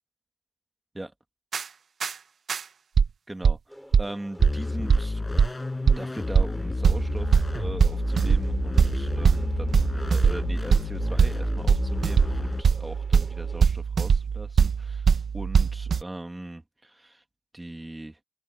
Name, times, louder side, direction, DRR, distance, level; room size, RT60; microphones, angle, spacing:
sound 1, 1.5-1.6 2.0-2.1 2.5-2.6 3.0-3.1 3.4-3.5 3.9-4.0 4.4-4.5 4.9-5.0 5.4-5.5 5.9-6.0 6.3-6.5 6.8-16.0, right 6 dB, 75° right, 0.8 m, -22 dB
voice 1, 3.3-5.4 5.8-17.2 17.5-18.2, right 1 dB, 15° right, 1.6 m, -40 dB
sound 2, 3.7-13.7, equal, ahead, 5.0 m, -48 dB
sound 3, 4.4-12.6, left 2 dB, 25° left, 5.1 m, -30 dB
wide cardioid pair, 175°, 0 cm